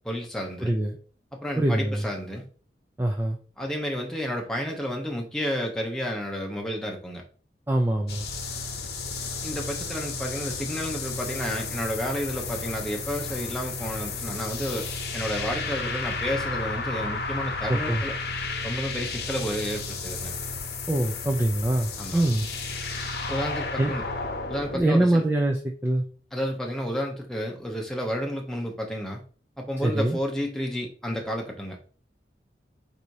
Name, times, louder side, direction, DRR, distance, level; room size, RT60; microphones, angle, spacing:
voice 1, 0.0-0.7 1.4-2.5 3.6-7.2 9.4-14.9 15.1-18.1 18.6-20.3 22.0-22.3 23.3-24.0 24.5-25.2 26.3-29.2 29.6-31.8, equal, 5° left, 0.8 m, -31 dB
voice 2, 0.6-1.0 1.6-2.0 3.0-3.4 7.7-8.3 17.7-18.0 20.9-22.5 23.8-23.9 24.7-26.0 29.8-30.2, right 1 dB, 10° right, 0.4 m, -24 dB
sound 1, 8.1-24.8, left 3 dB, 60° left, 0.8 m, -33 dB
4.1 x 2.7 x 4.7 m
head